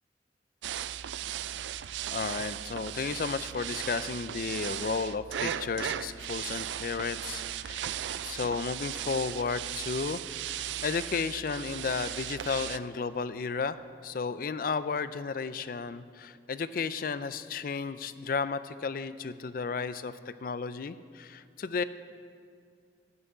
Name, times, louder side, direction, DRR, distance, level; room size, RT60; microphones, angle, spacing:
sound 1, 0.6-12.8, right 10 dB, 80° right, 0.3 m, -37 dB
voice 1, 2.1-8.0 8.2-10.2 10.4-21.8, left 5 dB, 50° left, 14 dB, 0.4 m, -33 dB
9.7 x 7.8 x 8.2 m, 2.3 s
head